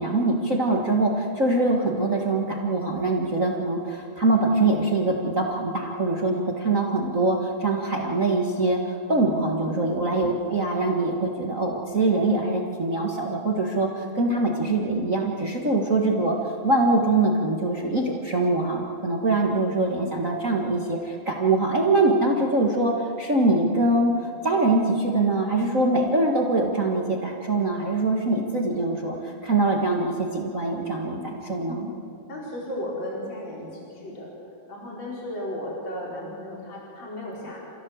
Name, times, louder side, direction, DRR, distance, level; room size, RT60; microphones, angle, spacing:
voice 1, 0.0-31.9, right 2 dB, 65° right, 0 dB, 0.7 m, -23 dB
voice 2, 9.6-9.9 31.7-32.0 32.3-34.3 34.7-37.6, left 1 dB, 30° left, -4 dB, 5.1 m, -35 dB
29.0 x 16.0 x 8.0 m, 2.5 s
omnidirectional pair, 4.5 m